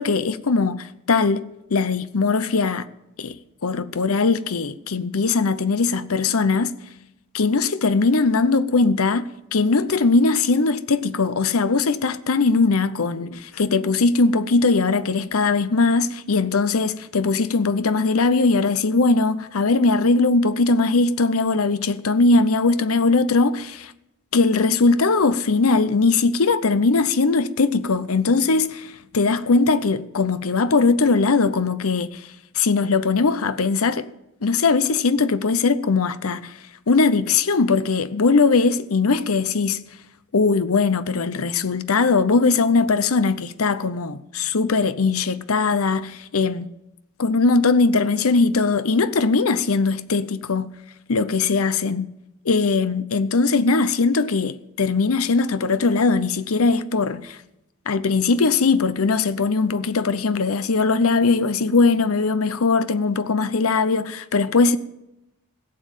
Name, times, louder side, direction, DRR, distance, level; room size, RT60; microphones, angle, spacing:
voice 1, 0.0-1.4 1.7-2.9 3.2-3.3 3.6-6.7 7.3-23.9 24.3-32.2 32.5-34.1 34.4-36.6 36.9-39.8 40.3-46.7 47.2-50.7 51.1-52.1 52.4-57.4 57.9-64.8, left 4 dB, 80° left, 0.7 m, -20 dB
16.5 x 7.4 x 8.9 m
head